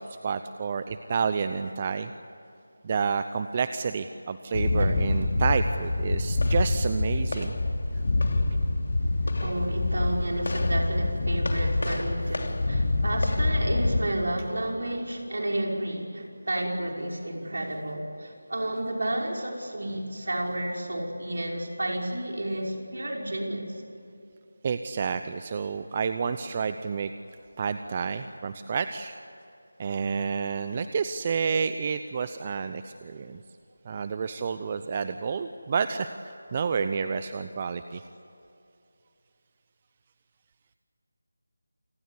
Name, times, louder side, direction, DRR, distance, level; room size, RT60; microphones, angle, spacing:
voice 1, 0.0-2.1 2.8-7.6 24.6-27.1 27.6-29.1 29.8-33.4 33.8-38.0, right 5 dB, 30° right, 11 dB, 0.7 m, -29 dB
sound 1, 4.5-14.0, left 2 dB, 55° left, 3.1 m, -26 dB
voice 2, 9.4-23.8, right 1 dB, 65° right, 0 dB, 5.7 m, -31 dB
28.5 x 19.5 x 8.4 m, 2.7 s
figure-of-eight pair, 165°, 0 cm